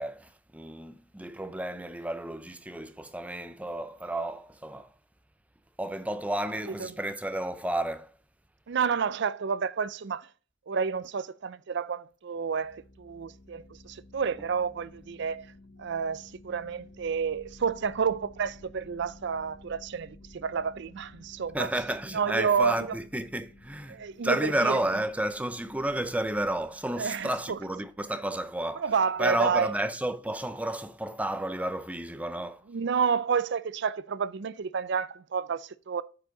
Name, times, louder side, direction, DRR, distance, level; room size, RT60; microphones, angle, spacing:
voice 1, 0.0-4.9 5.8-8.1 21.5-28.9 29.2-32.6, right 1 dB, 5° right, 0.5 m, -31 dB
voice 2, 8.7-10.3 10.7-15.5 15.8-21.7 22.1-23.0 23.9-24.8 27.0-27.6 28.8-29.7 32.7-36.0, right 6 dB, 60° right, 0.5 m, -30 dB
sound 1, 12.4-28.6, left 2 dB, 75° left, 1.6 m, -54 dB
9.2 x 4.9 x 3.8 m
head